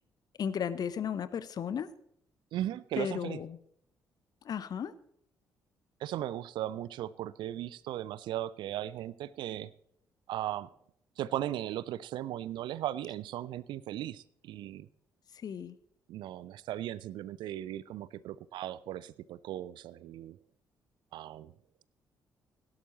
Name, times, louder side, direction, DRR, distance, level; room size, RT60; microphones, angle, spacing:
voice 1, 0.4-1.9 3.0-3.6 4.4-4.9 15.3-15.8, left 8 dB, 45° left, 15 dB, 0.8 m, -34 dB
voice 2, 2.5-3.4 6.0-9.7 10.3-10.7 11.2-14.9 16.1-20.4 21.1-21.5, right 12 dB, 55° right, 20 dB, 0.4 m, -37 dB
17.0 x 11.5 x 3.0 m, 0.69 s
figure-of-eight pair, 40°, 9 cm